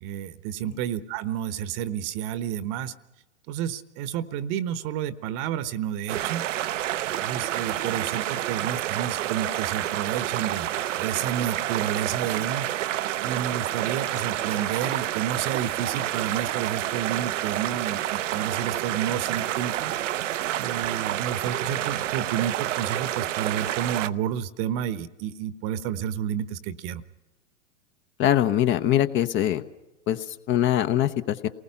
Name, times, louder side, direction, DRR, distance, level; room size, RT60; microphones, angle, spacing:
voice 1, 0.0-2.9 3.5-6.4 7.2-10.7 11.0-12.7 13.2-19.9 20.6-27.0, right 10 dB, 40° right, 15 dB, 1.1 m, -30 dB
sound 1, 6.1-24.1, right 13 dB, 70° right, 0.8 m, -29 dB
voice 2, 28.2-29.6 30.1-31.5, left 11 dB, 30° left, 12 dB, 0.9 m, -23 dB
28.5 x 19.5 x 5.8 m, 1.0 s
hypercardioid pair, 110°, 39 cm